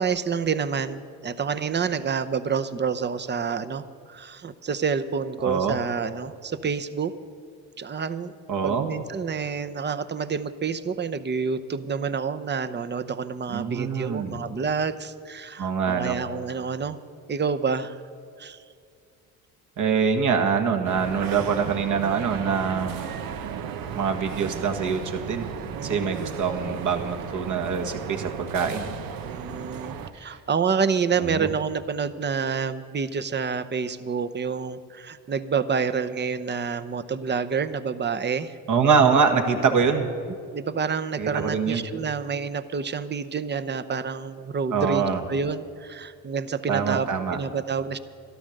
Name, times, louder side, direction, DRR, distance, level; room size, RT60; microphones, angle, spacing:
voice 1, 0.0-7.1 7.8-8.3 8.6-17.0 17.3-18.0 18.4-18.6 25.7-26.3 29.3-38.6 40.5-48.0, right 6 dB, 30° right, 12 dB, 0.8 m, -28 dB
voice 2, 5.4-5.8 8.5-8.9 13.5-14.4 15.6-16.2 19.8-23.1 23.9-25.5 25.8-28.9 30.1-30.4 31.2-31.5 38.7-40.1 41.2-41.8 44.7-45.2 46.7-47.4, right 6 dB, 55° right, 4 dB, 1.7 m, -24 dB
sound 1, 20.8-30.1, right 7 dB, 75° right, 1.0 m, -35 dB
12.5 x 12.5 x 6.6 m, 2.3 s
supercardioid pair, 70°, 35 cm